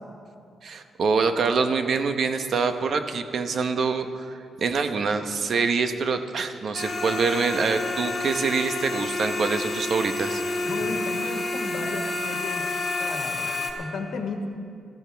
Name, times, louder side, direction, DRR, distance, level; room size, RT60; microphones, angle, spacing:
voice 1, 0.6-10.4, right 5 dB, 55° right, 8 dB, 0.8 m, -25 dB
sound 1, 6.7-13.7, left 2 dB, 45° left, 1.9 m, -29 dB
voice 2, 10.7-12.7 13.0-14.5, left 4 dB, 75° left, 4 dB, 1.4 m, -34 dB
19.5 x 14.5 x 3.4 m, 2.4 s
cardioid pair, 135°, 0 cm